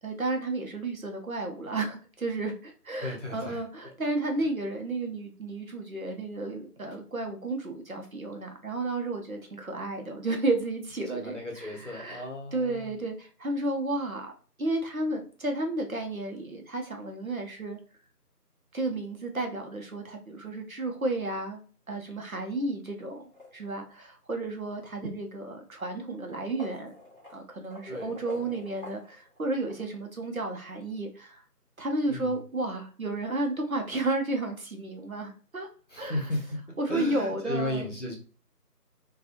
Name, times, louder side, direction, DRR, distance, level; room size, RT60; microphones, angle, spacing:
voice 1, 0.0-12.2 12.5-14.3 14.6-17.8 18.7-23.2 23.5-26.9 27.3-31.4 31.8-35.7 36.0-36.3 36.8-37.9, right 2 dB, 60° right, 3 dB, 0.7 m, -32 dB
voice 2, 3.0-3.9 11.1-12.9 27.9-28.5 32.1-32.3 35.9-38.2, left 1 dB, 50° left, 0 dB, 0.8 m, -35 dB
sound 1, 23.0-24.0 25.0-25.1 26.1-29.9, left 2 dB, 35° right, 1.1 m, -48 dB
2.7 x 2.3 x 2.4 m, 0.39 s
figure-of-eight pair, 175°, 48 cm